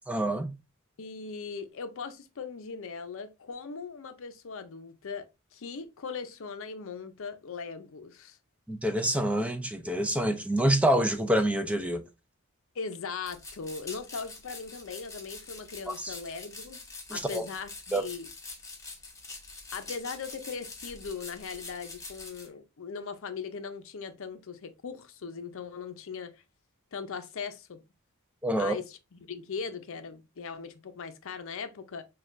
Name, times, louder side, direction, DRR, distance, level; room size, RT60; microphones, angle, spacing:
voice 1, 0.1-0.5 8.7-12.0 15.9-16.2 17.1-17.5 17.9-18.0 28.4-28.8, right 1 dB, 5° right, 0.4 m, -27 dB
voice 2, 1.0-5.3 5.5-8.4 12.7-16.8 17.1-18.3 19.7-26.3 26.9-27.8 28.6-29.0 29.3-32.0, left 5 dB, 65° left, 0.6 m, -39 dB
sound 1, 13.2-22.5, left 3 dB, 15° left, 0.9 m, -45 dB
6.2 x 2.3 x 2.5 m
head